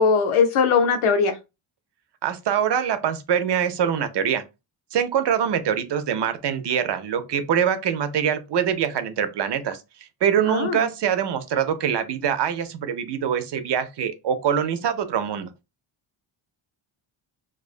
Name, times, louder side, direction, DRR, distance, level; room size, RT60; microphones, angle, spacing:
voice 1, 0.0-1.3 10.5-10.9, left 5 dB, 80° left, 0.7 m, -20 dB
voice 2, 2.2-4.4 4.9-9.8 10.2-15.5, right 8 dB, 55° right, 0.5 m, -24 dB
2.3 x 2.2 x 2.4 m
cardioid pair, 90°, 49 cm